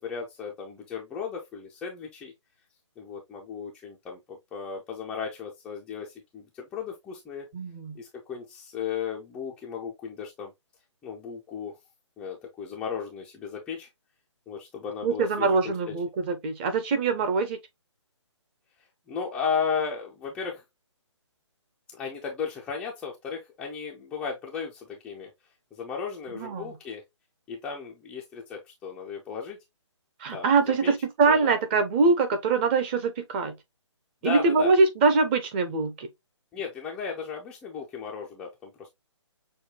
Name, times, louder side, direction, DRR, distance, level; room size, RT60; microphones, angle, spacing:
voice 1, 0.0-2.3 3.0-7.5 8.0-10.5 11.0-11.8 12.2-13.9 14.5-15.9 19.1-20.6 21.9-25.3 25.7-27.0 27.5-29.6 30.3-30.6 30.8-30.9 31.2-31.5 34.2-34.7 36.5-38.9, left 6 dB, 5° left, 0.4 m, -35 dB
voice 2, 7.5-8.0 15.0-17.6 26.3-26.7 30.2-33.5 34.2-36.1, right 4 dB, 25° right, 0.6 m, -23 dB
6.3 x 2.2 x 3.0 m
figure-of-eight pair, 145°, 16 cm